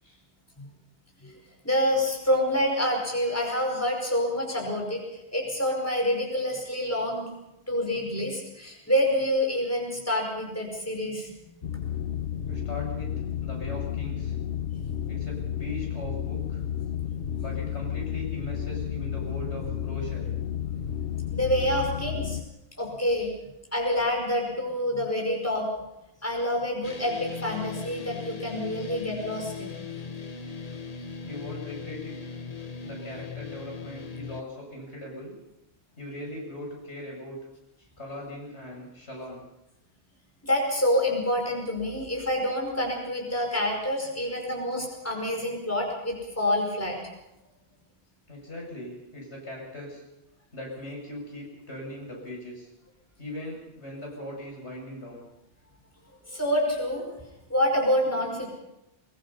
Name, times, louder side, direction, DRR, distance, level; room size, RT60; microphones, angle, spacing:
voice 1, 1.6-5.0 5.3-7.3 7.7-11.4 21.3-22.4 22.8-23.3 23.7-25.7 26.2-29.7 40.4-47.0 56.3-57.1 57.5-58.5, left 1 dB, 15° left, 0 dB, 5.2 m, -27 dB
sound 1, 11.6-22.4, left 9 dB, 60° left, 1.1 m, -32 dB
voice 2, 12.5-13.1 13.4-14.3 15.1-16.6 17.4-20.3 31.2-32.2 32.8-35.3 36.0-37.4 38.0-39.4 48.3-50.0 50.5-52.7 53.2-55.3, left 1 dB, 85° left, -1 dB, 7.3 m, -39 dB
sound 2, 26.8-34.4, left 5 dB, 35° left, 1.2 m, -39 dB
23.0 x 22.0 x 5.6 m, 0.91 s
omnidirectional pair, 1.1 m